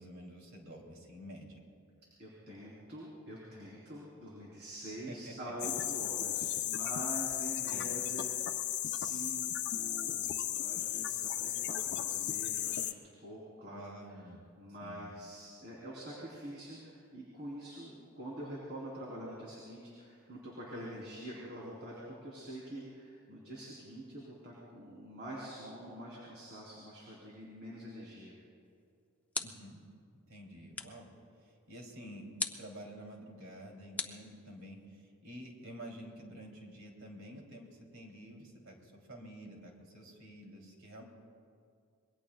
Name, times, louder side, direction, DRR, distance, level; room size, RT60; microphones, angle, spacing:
voice 1, 0.0-1.6 5.1-5.3 7.7-8.0 13.7-14.4 14.8-15.1 29.4-29.8 30.3-31.1 31.7-32.3 32.6-41.0, equal, 65° right, 0 dB, 3.1 m, -49 dB
voice 2, 2.2-14.2 14.6-28.4, right 1 dB, 50° right, -5 dB, 3.5 m, -46 dB
sound 1, 5.6-12.9, left 11 dB, 55° left, 0.6 m, -35 dB
sound 2, 28.6-29.8 30.7-31.1 32.4-32.7 34.0-34.8, left 3 dB, 5° left, 0.7 m, -40 dB
26.5 x 21.5 x 2.3 m, 2.3 s
head